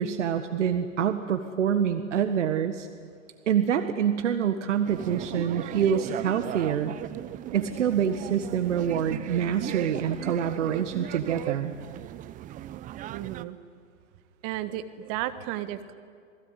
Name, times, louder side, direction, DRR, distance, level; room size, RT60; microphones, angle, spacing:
voice 1, 0.0-2.9 3.5-7.0 7.5-11.7, right 8 dB, 65° right, 8 dB, 1.6 m, -26 dB
sound 1, 4.8-13.4, right 13 dB, 20° right, 0.7 m, -37 dB
voice 2, 13.1-13.6 14.4-15.9, right 13 dB, 35° right, 11 dB, 1.7 m, -33 dB
27.5 x 20.0 x 9.8 m, 2.2 s
figure-of-eight pair, 110°, 39 cm